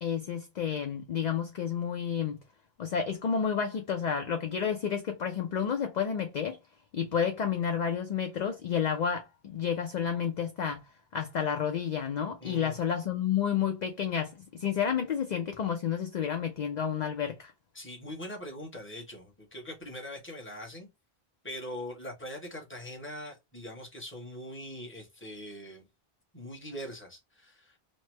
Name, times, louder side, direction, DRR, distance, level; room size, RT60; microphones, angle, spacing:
voice 1, 0.0-2.4 2.8-6.6 6.9-10.8 11.1-17.5, left 7 dB, 55° left, 0.6 m, -30 dB
voice 2, 12.4-12.8 17.7-20.9 21.4-25.9 26.3-27.8, equal, 10° left, 1.0 m, -42 dB
3.2 x 2.0 x 3.1 m
omnidirectional pair, 1.0 m